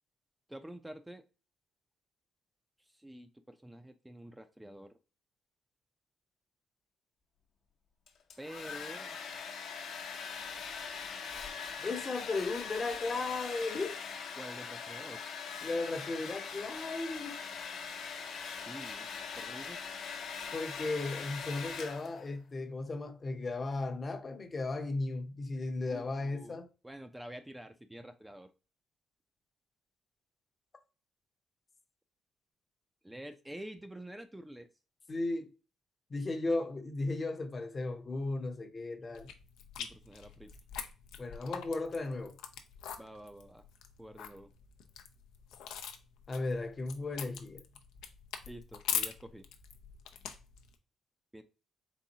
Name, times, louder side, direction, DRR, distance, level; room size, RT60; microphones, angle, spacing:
voice 1, 0.5-1.3 2.8-4.9 8.4-9.2 14.3-15.2 18.6-19.1 19.4-19.9 25.9-26.6 26.8-28.5 33.0-34.7 39.8-40.6 43.0-43.6 44.0-44.5 48.5-49.5 51.3-51.4, right 1 dB, 10° right, 0.4 m, -48 dB
Domestic sounds home sounds, 8.1-22.3, left 6 dB, 70° left, 0.9 m, -42 dB
voice 2, 11.8-14.0 15.6-17.4 20.5-26.7 35.1-35.5 36.1-39.3 41.2-42.3 46.3-47.6, left 3 dB, 35° left, 0.7 m, -35 dB
sound 1, 39.1-50.8, left 8 dB, 90° left, 0.5 m, -42 dB
4.1 x 3.6 x 2.7 m
cardioid pair, 90°, 0 cm